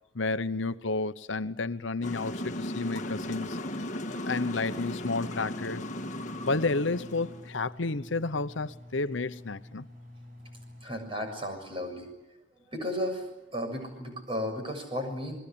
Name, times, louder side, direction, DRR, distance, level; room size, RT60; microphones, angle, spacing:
voice 1, 0.1-3.6 4.1-5.9 6.5-9.9, left 3 dB, 75° left, 0.9 m, -31 dB
sound 1, 2.0-7.6, left 1 dB, 40° left, 1.7 m, -36 dB
Engine, 4.7-10.9, left 1 dB, 45° right, 8.0 m, -49 dB
voice 2, 10.8-12.1 12.6-15.4, equal, 25° right, 7.0 m, -34 dB
28.5 x 21.5 x 8.7 m
head